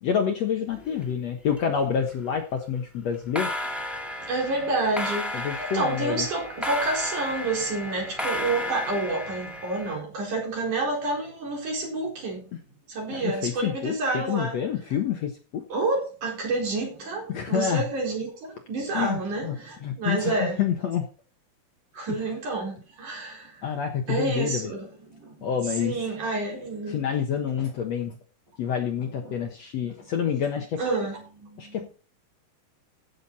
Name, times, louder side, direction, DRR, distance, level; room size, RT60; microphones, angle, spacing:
voice 1, 0.0-3.5 5.3-6.3 13.1-15.6 17.3-17.8 18.9-19.6 19.8-21.1 22.1-22.2 23.6-24.7 25.4-25.9 26.9-28.2 28.6-30.8 31.6-31.9, left 8 dB, 60° left, 2.0 m, -28 dB
sound 1, 0.7-1.6 1.8-2.3 3.1-9.9, left 1 dB, ahead, 1.8 m, -33 dB
voice 2, 3.9-12.5 12.9-14.6 15.7-20.6 21.9-27.0 29.0-29.5 29.8-29.9 30.8-31.9, right 3 dB, 55° right, 5.8 m, -29 dB
15.0 x 7.2 x 4.2 m
omnidirectional pair, 4.2 m